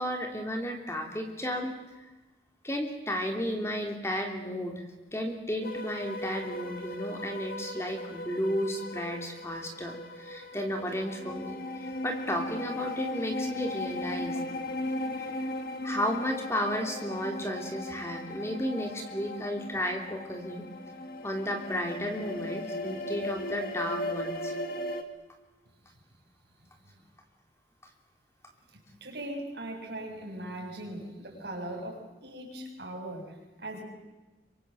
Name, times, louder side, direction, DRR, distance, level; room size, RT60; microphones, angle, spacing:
voice 1, 0.0-1.7 2.0-2.1 2.6-4.8 5.1-14.4 15.2-15.3 15.8-20.6 21.2-24.5, equal, 15° left, 3 dB, 3.1 m, -33 dB
sound 1, 5.6-25.0, left 1 dB, 55° left, 2.3 m, -37 dB
voice 2, 28.7-33.8, right 1 dB, 70° right, 1 dB, 7.4 m, -40 dB
26.0 x 24.5 x 7.7 m, 1.1 s
head